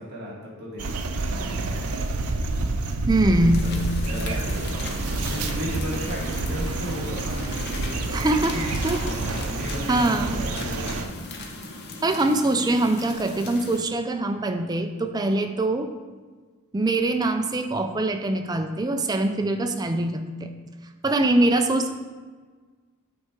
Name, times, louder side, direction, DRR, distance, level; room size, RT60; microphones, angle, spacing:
voice 1, 0.0-2.1 3.6-8.7 9.0-11.0, equal, 50° right, -6 dB, 1.8 m, -35 dB
sound 1, 0.8-11.0, right 2 dB, 90° right, 0.6 m, -28 dB
voice 2, 3.1-3.7 8.1-8.6 8.8-9.0 9.9-10.3 12.0-15.9 16.7-20.5 21.0-21.9, right 2 dB, 20° right, 6 dB, 0.4 m, -23 dB
sound 2, 3.5-13.8, left 3 dB, 50° left, 0.7 m, -38 dB
8.4 x 3.5 x 4.5 m, 1.4 s
head